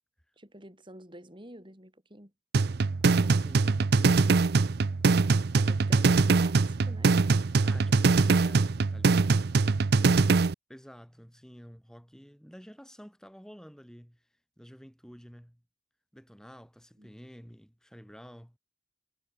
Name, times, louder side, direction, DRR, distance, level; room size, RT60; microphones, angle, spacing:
voice 1, 0.4-2.3 5.5-7.1 7.9-8.0 17.0-17.2, right 1 dB, 25° right, 7.1 m, -49 dB
sound 1, 2.5-10.5, right 4 dB, 55° right, 0.5 m, -23 dB
voice 2, 3.1-4.5 7.4-9.6 10.7-14.2 14.6-15.6 16.1-18.6, equal, 5° left, 6.4 m, -50 dB
head